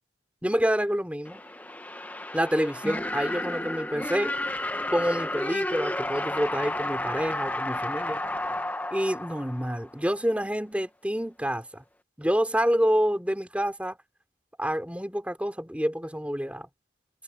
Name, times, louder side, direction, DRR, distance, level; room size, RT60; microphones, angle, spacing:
voice 1, 0.4-1.4 2.3-4.4 4.9-8.2 8.9-11.8 12.2-14.0 14.6-16.7, equal, 5° right, 3.3 m, -27 dB
sound 1, 1.2-10.1, left 1 dB, 10° left, 1.4 m, -32 dB
head